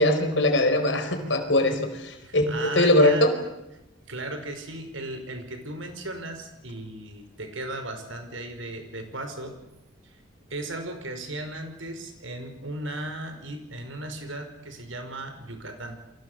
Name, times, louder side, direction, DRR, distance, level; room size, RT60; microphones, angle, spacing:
voice 1, 0.0-1.8 2.3-3.3, left 1 dB, 65° left, 7 dB, 4.8 m, -21 dB
voice 2, 2.2-3.3 4.1-9.6 10.0-10.2 10.5-16.0, right 2 dB, 85° right, 7 dB, 5.3 m, -36 dB
29.5 x 24.0 x 6.9 m, 0.93 s
head